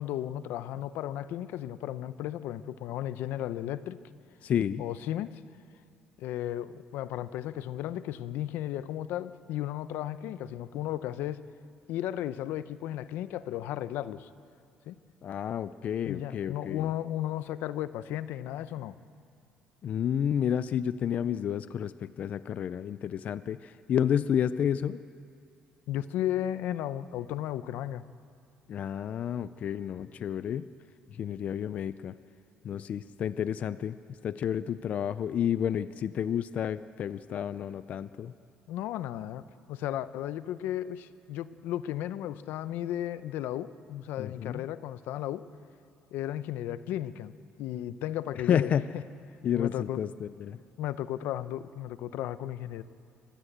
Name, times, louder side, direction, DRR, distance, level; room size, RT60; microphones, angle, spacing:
voice 1, 0.0-4.0 4.8-5.4 6.2-11.5 11.9-14.3 14.9-15.0 16.1-19.0 25.9-28.0 38.7-39.4 39.7-45.5 46.1-48.7 49.6-50.0 50.8-52.8, left 12 dB, 75° left, 14 dB, 0.7 m, -34 dB
voice 2, 4.4-4.9 15.2-16.9 19.8-25.0 28.7-30.7 31.1-32.1 32.6-38.3 44.2-44.6 48.4-48.8 49.4-50.6, left 9 dB, 45° left, 14 dB, 0.5 m, -30 dB
23.5 x 20.0 x 8.1 m, 2.4 s
cardioid pair, 135°, 3 cm